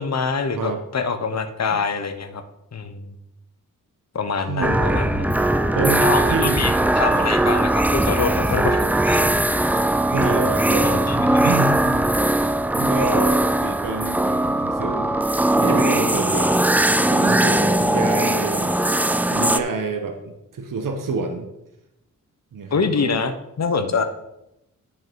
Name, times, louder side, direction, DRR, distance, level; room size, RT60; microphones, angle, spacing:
voice 1, 0.0-2.4 2.7-3.1 4.1-5.4 6.0-9.2 10.8-11.5 22.7-24.0, left 5 dB, 55° left, 8 dB, 1.1 m, -25 dB
voice 2, 4.5-4.9 5.7-6.8 7.1-7.3 10.1-11.1 11.4-12.1 12.7-15.2 15.5-16.8 17.1-18.7 19.3-21.5 22.5-23.2 23.9-24.0, right 3 dB, 75° right, 5 dB, 1.2 m, -27 dB
sound 1, 4.6-19.6, right 1 dB, 5° right, 0.4 m, -20 dB
10.5 x 5.6 x 4.7 m, 0.87 s
cardioid pair, 85°, 33 cm